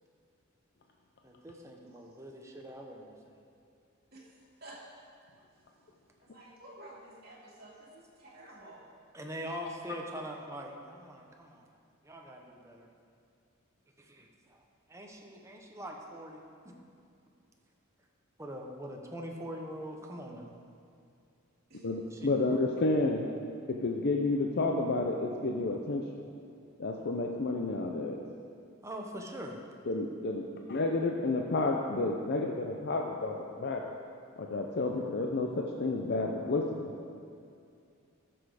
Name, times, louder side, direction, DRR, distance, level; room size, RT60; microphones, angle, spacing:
voice 1, 1.2-3.4 9.1-11.6 12.0-12.9 14.0-14.6 14.9-16.7 18.4-20.5 22.1-22.3 28.8-29.5, equal, 15° right, 1 dB, 0.9 m, -43 dB
voice 2, 6.2-8.8 15.7-15.8 21.7-21.9, right 1 dB, 50° right, -7 dB, 2.8 m, -51 dB
voice 3, 21.8-23.3 23.7-26.0 26.8-28.2 29.9-33.9 34.4-36.9, left 2 dB, 55° left, 1 dB, 0.6 m, -31 dB
13.0 x 6.2 x 5.0 m, 2.4 s
head